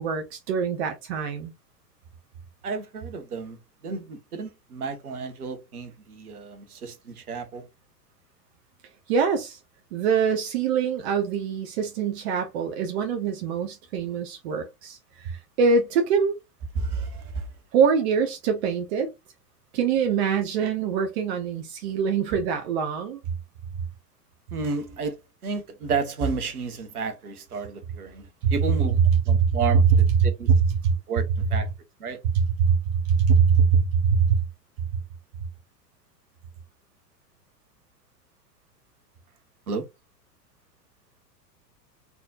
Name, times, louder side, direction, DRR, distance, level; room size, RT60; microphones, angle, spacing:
voice 1, 0.0-1.5 9.1-9.6 9.9-16.4 17.7-19.1 19.7-23.2 28.4-28.5 29.4-29.5 30.5-30.6 30.8-30.9 32.3-32.8 33.0-34.3, right 6 dB, 40° right, 1.0 m, -24 dB
voice 2, 2.6-3.6 3.8-7.7 16.7-17.5 24.5-25.1 25.4-29.0 29.3-29.8 30.2-30.5 31.1-31.7 32.0-32.2 39.7-39.8, right 4 dB, 60° right, 1.5 m, -31 dB
4.3 x 4.1 x 2.5 m
figure-of-eight pair, 95°, 50 cm